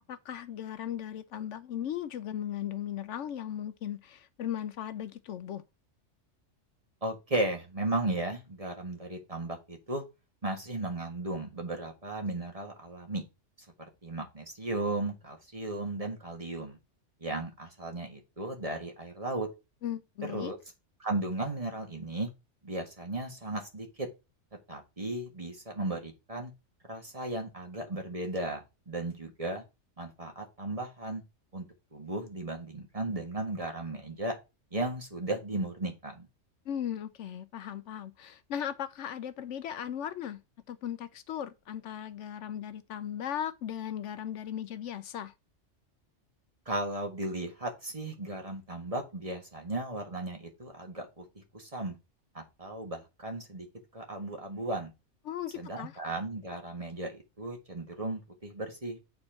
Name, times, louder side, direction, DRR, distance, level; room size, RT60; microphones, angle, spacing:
voice 1, 0.1-5.6 19.8-20.5 36.7-40.4 40.7-45.3 55.3-55.9, left 10 dB, 70° left, 0.9 m, -37 dB
voice 2, 7.0-10.0 10.4-13.2 14.0-16.8 17.2-19.5 20.2-20.6 21.0-22.3 22.6-24.1 24.7-26.5 26.9-29.6 30.0-31.2 31.5-31.6 31.9-34.4 34.7-36.3 46.6-51.9 52.3-53.6 53.9-54.9 55.5-59.0, right 2 dB, 30° right, 1.6 m, -35 dB
8.6 x 4.4 x 4.3 m
omnidirectional pair, 1.3 m